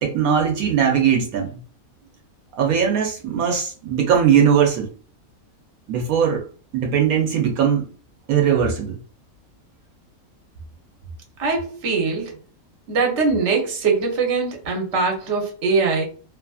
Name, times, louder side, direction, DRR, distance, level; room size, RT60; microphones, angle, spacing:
voice 1, 0.0-1.6 2.6-4.9 5.9-6.5 6.7-7.9 8.3-9.0, right 8 dB, 80° right, 1.1 m, -19 dB
voice 2, 11.4-12.3 12.9-16.0, right 4 dB, 55° right, 1.1 m, -22 dB
2.8 x 2.5 x 2.3 m
omnidirectional pair, 1.5 m